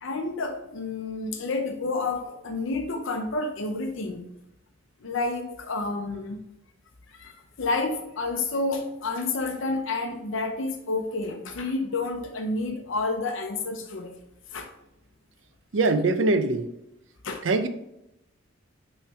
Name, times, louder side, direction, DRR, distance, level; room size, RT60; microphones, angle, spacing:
voice 1, 0.0-4.3 5.0-6.4 7.1-14.1 14.5-14.7 17.2-17.4, left 3 dB, 75° left, 0.7 m, -30 dB
voice 2, 15.7-16.7 17.4-17.7, right 3 dB, 70° right, 0.6 m, -22 dB
6.2 x 3.2 x 5.7 m
head